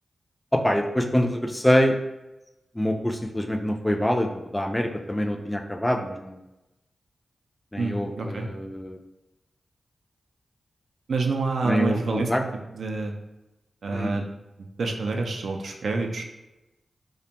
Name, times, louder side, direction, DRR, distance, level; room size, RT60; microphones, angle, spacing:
voice 1, 0.5-1.9 2.8-6.4 7.7-9.0 11.6-12.4 13.9-14.2, equal, 15° left, 3 dB, 0.3 m, -25 dB
voice 2, 7.8-8.5 11.1-12.3 12.7-13.1 13.8-14.2 14.8-16.2, right 3 dB, 80° right, 2 dB, 0.3 m, -27 dB
2.5 x 2.1 x 2.9 m, 0.98 s
cardioid pair, 60°, 0 cm